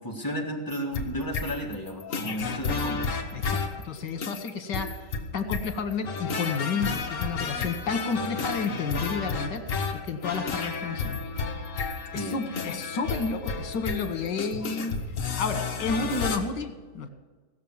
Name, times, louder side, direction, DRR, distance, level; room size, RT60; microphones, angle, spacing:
voice 1, 0.0-3.1 12.1-12.4, equal, 10° left, 0 dB, 1.7 m, -33 dB
sound 1, 0.7-16.4, left 4 dB, 50° left, 1.5 m, -32 dB
voice 2, 3.3-9.6 9.9-11.2 12.1-15.0 15.4-17.1, left 4 dB, 80° left, 8 dB, 1.9 m, -31 dB
17.0 x 6.9 x 7.2 m, 1.3 s
omnidirectional pair, 1.9 m